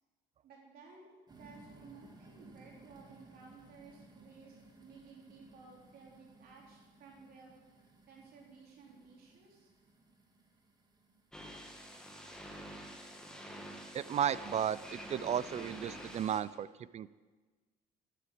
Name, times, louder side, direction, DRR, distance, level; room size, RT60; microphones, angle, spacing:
voice 1, 0.4-7.5 8.1-9.7, right 4 dB, 65° right, -2 dB, 3.2 m, -56 dB
sound 1, 1.3-11.3, right 2 dB, 25° right, 1.9 m, -60 dB
sound 2, 11.3-16.4, equal, 5° left, 1.7 m, -47 dB
voice 2, 13.9-17.1, right 9 dB, 40° right, 18 dB, 0.4 m, -34 dB
10.0 x 8.4 x 7.7 m, 1.3 s
cardioid pair, 110°, 17 cm